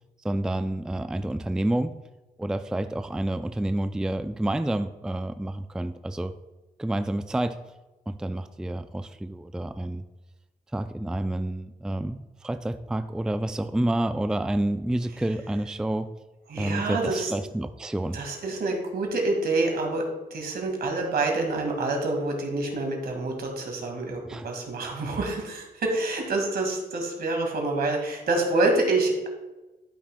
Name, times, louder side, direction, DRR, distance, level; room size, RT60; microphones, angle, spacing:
voice 1, 0.2-2.0 2.4-6.3 6.8-7.6 8.1-10.0 10.7-16.1 16.6-18.2 24.3-24.5, right 1 dB, 5° right, 10 dB, 0.3 m, -29 dB
voice 2, 16.5-17.3 18.1-29.3, right 2 dB, 70° right, 2 dB, 1.9 m, -27 dB
12.5 x 5.9 x 2.2 m, 1.1 s
cardioid pair, 60°, 17 cm